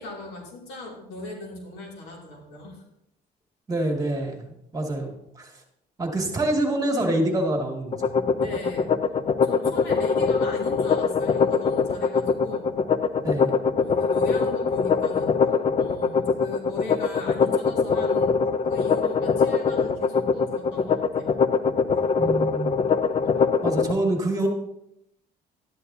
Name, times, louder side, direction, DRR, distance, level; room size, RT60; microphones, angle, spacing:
voice 1, 0.0-2.8 8.4-8.9 9.4-12.7 13.7-18.4 18.6-21.4, left 2 dB, 85° left, -1 dB, 2.9 m, -38 dB
voice 2, 3.7-5.5 6.0-8.0 13.2-13.5 22.2-22.8 23.6-24.5, right 1 dB, 20° right, 1 dB, 2.3 m, -26 dB
sound 1, 7.9-23.9, left 5 dB, 35° left, 0.6 m, -22 dB
12.5 x 10.5 x 2.8 m, 0.80 s
cardioid pair, 110°, 17 cm